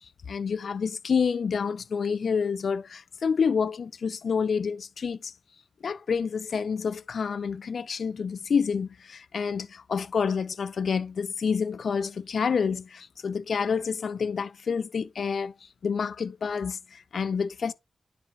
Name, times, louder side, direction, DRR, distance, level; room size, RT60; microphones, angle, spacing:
voice 1, 0.3-5.3 5.8-15.5 15.8-17.7, left 6 dB, 75° left, 0.4 m, -28 dB
9.6 x 6.9 x 2.3 m
cardioid pair, 45°, 0 cm